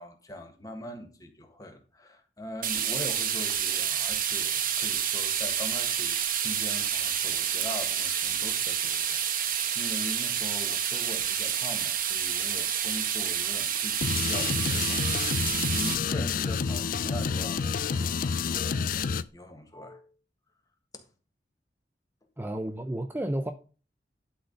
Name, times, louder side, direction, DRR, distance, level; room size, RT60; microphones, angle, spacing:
voice 1, 0.0-20.1 20.9-21.1, left 1 dB, 20° left, 1.6 m, -42 dB
sound 1, 2.6-15.9, right 8 dB, 55° right, 1.2 m, -29 dB
sound 2, 14.0-19.2, left 5 dB, 50° left, 0.4 m, -29 dB
voice 2, 22.4-23.5, right 1 dB, 10° right, 0.6 m, -31 dB
11.5 x 4.3 x 5.2 m
head